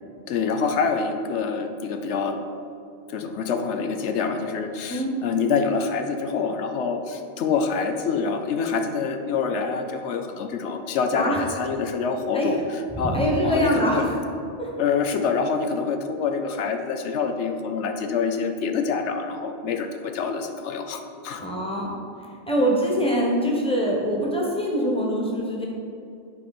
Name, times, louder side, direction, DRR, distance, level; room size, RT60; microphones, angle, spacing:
voice 1, 0.3-2.4 3.1-12.6 13.0-13.2 13.4-14.1 14.8-21.4, left 5 dB, 90° left, 5 dB, 1.0 m, -26 dB
voice 2, 13.0-14.1 14.6-14.7 21.4-21.9 22.5-25.7, equal, 5° left, -3 dB, 1.2 m, -23 dB
10.5 x 4.3 x 4.3 m, 2.5 s
omnidirectional pair, 1.1 m